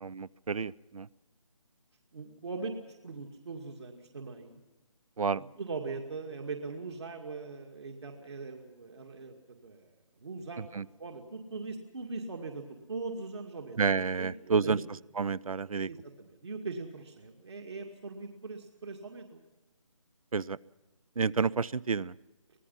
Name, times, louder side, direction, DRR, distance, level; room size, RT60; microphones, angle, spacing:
voice 1, 0.0-1.1 5.2-5.4 10.6-10.8 13.8-14.8 15.2-15.9 20.3-20.6 21.2-22.1, right 5 dB, 80° right, 23 dB, 0.7 m, -30 dB
voice 2, 2.1-4.6 5.6-9.3 9.6-9.9 10.2-10.7 11.0-14.8 15.8-19.4, right 3 dB, 50° right, 2 dB, 2.3 m, -41 dB
25.0 x 19.0 x 5.6 m, 1.1 s
hypercardioid pair, 175°, 18 cm